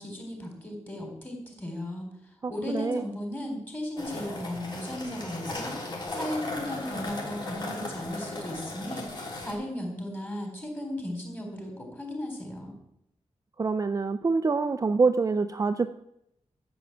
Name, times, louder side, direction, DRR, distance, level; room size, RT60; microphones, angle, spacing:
voice 1, 0.0-12.8, left 1 dB, 15° left, 1 dB, 4.1 m, -36 dB
voice 2, 2.4-3.0 13.6-15.9, right 4 dB, 30° right, 9 dB, 0.4 m, -26 dB
sound 1, 4.0-9.5, left 2 dB, 40° left, 3.5 m, -36 dB
13.0 x 7.1 x 8.9 m, 0.78 s
wide cardioid pair, 175°, 12 cm